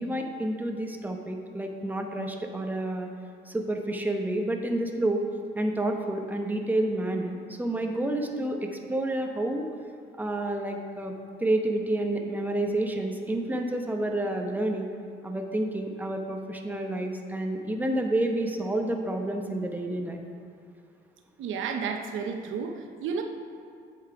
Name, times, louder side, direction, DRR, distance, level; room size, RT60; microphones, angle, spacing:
voice 1, 0.0-3.1 3.5-5.2 5.5-9.7 10.2-11.1 11.4-14.9 15.2-20.2, right 1 dB, 10° right, 3 dB, 0.9 m, -29 dB
voice 2, 21.4-23.2, right 6 dB, 80° right, 4 dB, 0.9 m, -32 dB
8.2 x 7.1 x 4.9 m, 2.4 s
cardioid pair, 90°, 20 cm